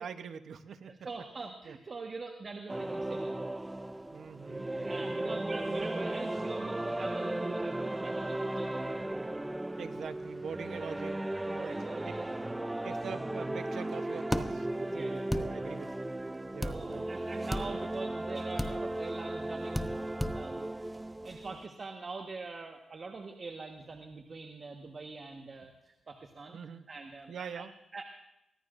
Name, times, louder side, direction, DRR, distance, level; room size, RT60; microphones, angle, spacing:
voice 1, 0.0-0.9 1.6-1.8 4.1-5.7 9.8-11.9 12.8-16.1 16.5-17.1 17.7-17.8 26.5-26.9 27.3-27.7, right 6 dB, 70° right, 10 dB, 0.9 m, -44 dB
voice 2, 0.8-3.4 4.7-9.1 11.5-12.5 14.9-15.6 16.6-20.0 20.3-20.9 21.2-26.6 26.9-28.0, right 4 dB, 45° right, 4 dB, 1.4 m, -44 dB
sound 1, 2.7-21.7, right 1 dB, 15° right, 0.5 m, -36 dB
sound 2, 14.3-14.5 15.3-15.5 16.6-16.8 17.5-17.7 18.6-18.7 19.7-19.9 20.2-20.4, left 1 dB, 10° left, 0.9 m, -31 dB
23.5 x 17.0 x 2.6 m, 0.91 s
cardioid pair, 80°, 0 cm